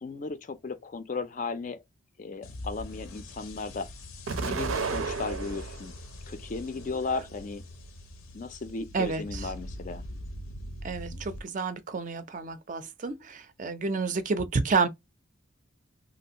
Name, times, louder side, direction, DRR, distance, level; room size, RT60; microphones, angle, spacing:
voice 1, 0.0-1.8 2.2-3.9 4.4-5.9 6.3-7.6 8.3-10.0, left 4 dB, 40° left, 0.4 m, -35 dB
sound 1, 2.4-11.4, left 1 dB, 85° left, 0.6 m, -43 dB
Explosion, 4.3-5.9 6.4-7.3, right 4 dB, 90° right, 0.6 m, -33 dB
voice 2, 8.9-9.5 10.8-14.9, right 4 dB, 40° right, 0.4 m, -30 dB
3.0 x 2.5 x 2.7 m
head